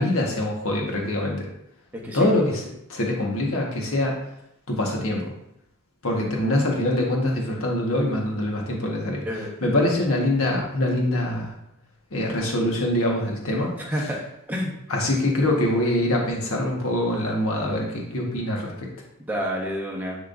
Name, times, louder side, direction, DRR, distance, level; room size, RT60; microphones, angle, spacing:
voice 1, 0.0-1.4 2.1-4.2 4.7-5.3 6.0-9.2 9.6-11.5 12.1-14.1 14.9-18.9, left 1 dB, 65° left, -1 dB, 1.4 m, -24 dB
voice 2, 1.9-2.3 9.3-9.9 13.8-14.2 14.5-14.7 19.3-20.2, equal, 10° right, -2 dB, 1.1 m, -29 dB
10.5 x 3.7 x 2.6 m, 0.80 s
head